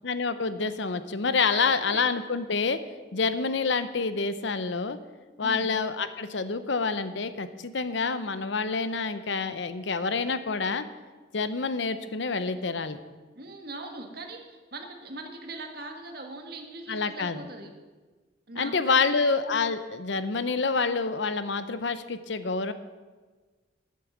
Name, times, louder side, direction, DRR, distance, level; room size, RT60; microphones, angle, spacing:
voice 1, 0.0-2.8 3.1-5.0 5.4-10.8 11.3-13.0 16.9-17.4 18.6-22.7, left 4 dB, 70° left, 12 dB, 0.7 m, -27 dB
voice 2, 1.5-2.0 5.4-5.7 13.3-17.7 18.5-19.3, right 2 dB, 55° right, 3 dB, 1.7 m, -40 dB
10.5 x 8.7 x 7.2 m, 1.4 s
head